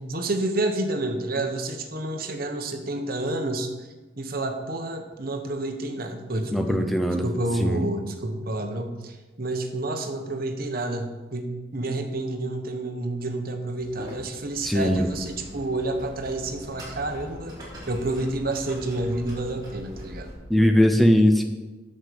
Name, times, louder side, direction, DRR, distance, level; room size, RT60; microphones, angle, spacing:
voice 1, 0.0-3.9 4.2-6.9 7.2-17.6 17.9-20.3, right 2 dB, 45° right, 5 dB, 1.1 m, -29 dB
voice 2, 6.5-7.3 7.6-7.8 14.6-15.1 20.5-21.4, equal, ahead, 4 dB, 0.7 m, -20 dB
sound 1, 13.8-20.3, equal, 20° right, 3.0 m, -42 dB
7.8 x 6.5 x 7.0 m, 1.2 s
head